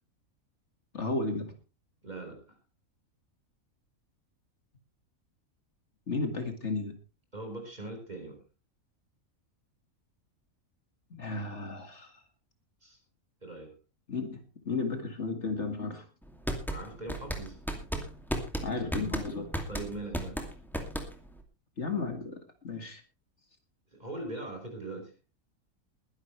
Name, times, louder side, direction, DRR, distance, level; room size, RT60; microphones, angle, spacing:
voice 1, 0.9-1.5 6.1-7.0 11.1-12.2 14.1-16.1 18.6-19.5 21.8-23.0, left 3 dB, 55° left, 6 dB, 2.2 m, -34 dB
voice 2, 2.0-2.4 7.3-8.4 12.8-13.0 13.4-13.7 16.7-17.6 19.7-20.4 23.9-25.1, right 2 dB, 30° right, 3 dB, 5.2 m, -40 dB
sound 1, 16.2-21.4, equal, ahead, 2.4 m, -34 dB
21.5 x 11.0 x 3.2 m, 0.32 s
omnidirectional pair, 1.5 m